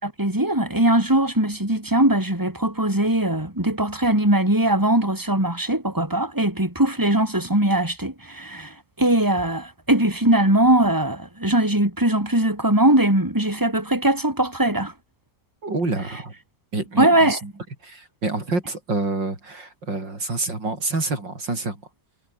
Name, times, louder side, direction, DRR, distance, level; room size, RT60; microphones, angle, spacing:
voice 1, 0.0-14.9 17.0-17.4, right 1 dB, 10° right, 5.0 m, -20 dB
voice 2, 15.6-16.3 16.7-17.5 17.8-21.8, right 3 dB, 80° right, 6.3 m, -27 dB
omnidirectional pair, 1.9 m